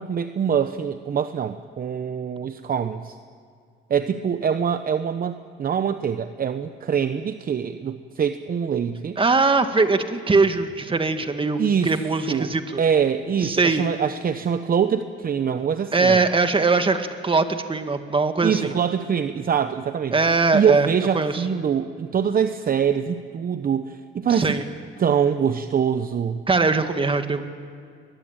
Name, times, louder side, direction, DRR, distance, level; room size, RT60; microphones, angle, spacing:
voice 1, 0.0-3.2 3.9-9.2 11.6-12.0 12.3-16.2 18.4-20.2 20.5-24.6 25.0-26.4, right 7 dB, 45° right, 10 dB, 0.9 m, -24 dB
voice 2, 9.2-12.8 13.4-13.8 15.9-18.7 20.1-20.9 21.1-21.5 24.3-24.6 26.5-27.4, right 3 dB, 25° right, 8 dB, 1.9 m, -21 dB
22.5 x 21.0 x 9.0 m, 2.2 s
cardioid pair, 90°, 20 cm